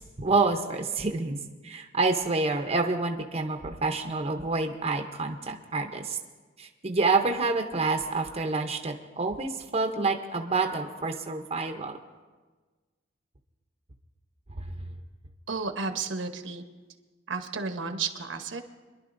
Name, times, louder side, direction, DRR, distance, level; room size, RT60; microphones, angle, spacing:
voice 1, 0.0-1.4 1.6-6.2 6.6-12.0, right 3 dB, 35° right, 4 dB, 0.7 m, -28 dB
voice 2, 15.5-16.6 17.3-18.6, right 4 dB, 80° right, 6 dB, 1.1 m, -32 dB
26.5 x 11.0 x 2.6 m, 1.3 s
head